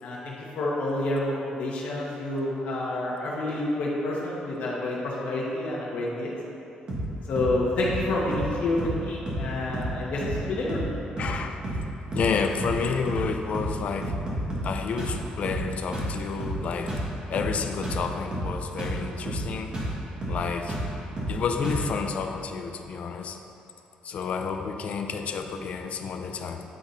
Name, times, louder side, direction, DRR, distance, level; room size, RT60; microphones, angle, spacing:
voice 1, 0.0-6.3 7.3-10.8, left 2 dB, 70° left, -5 dB, 1.1 m, -28 dB
sound 1, 6.9-7.1 7.4-7.6 7.8-8.0 8.3-8.5 8.8-9.0 9.3-9.5 9.7-9.9 10.2-10.4 10.7-10.9 11.2-11.4 11.6-11.9 12.1-12.3 12.6-12.8 13.1-13.3 13.5-13.8 14.0-14.7 15.0-15.2 15.4-15.7 15.9-16.1 16.4-16.6 16.9-17.1 17.3-17.6 17.8-18.0 18.3-18.5 18.8-19.0 19.3-19.5 19.7-19.9 20.2-20.4 20.7-20.9 21.2-21.4 21.6-21.9, right 1 dB, 35° right, 1.5 m, -30 dB
voice 2, 11.2-11.6 12.1-14.1 14.6-17.0 17.3-19.8 20.2-20.8 21.3-23.4 24.0-26.6, left 5 dB, 55° left, 5 dB, 0.4 m, -30 dB
9.2 x 3.9 x 4.1 m, 2.9 s
cardioid pair, 140°, 3 cm